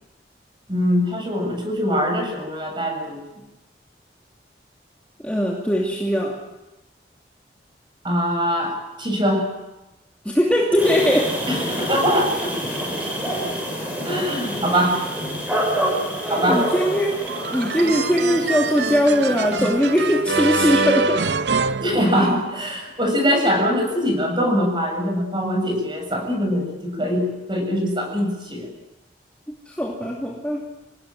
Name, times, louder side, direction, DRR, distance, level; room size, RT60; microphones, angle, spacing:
voice 1, 0.7-3.2 8.0-9.5 11.5-12.5 14.0-15.0 16.3-16.7 19.6-19.7 21.8-28.7, equal, 25° right, 3 dB, 7.5 m, -22 dB
voice 2, 5.2-6.4 10.2-11.4 16.2-21.3 22.0-22.3 29.5-30.7, equal, 5° left, -2 dB, 2.7 m, -21 dB
sound 1, 10.8-20.5, equal, 10° right, 7.3 m, -28 dB
sound 2, 17.3-22.7, right 4 dB, 70° right, 0.8 m, -25 dB
27.5 x 18.5 x 9.1 m, 0.99 s
head